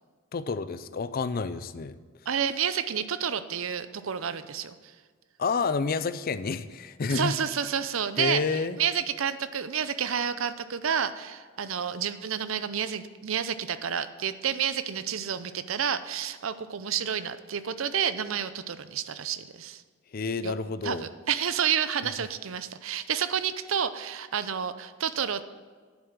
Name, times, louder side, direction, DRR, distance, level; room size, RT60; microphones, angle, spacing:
voice 1, 0.3-2.0 5.4-7.3 8.2-8.8 20.1-21.0, left 4 dB, 45° left, 13 dB, 0.5 m, -29 dB
voice 2, 2.3-4.7 7.1-19.8 20.4-20.5 20.8-25.5, right 8 dB, 75° right, 13 dB, 0.6 m, -30 dB
9.7 x 7.4 x 6.0 m, 1.5 s
head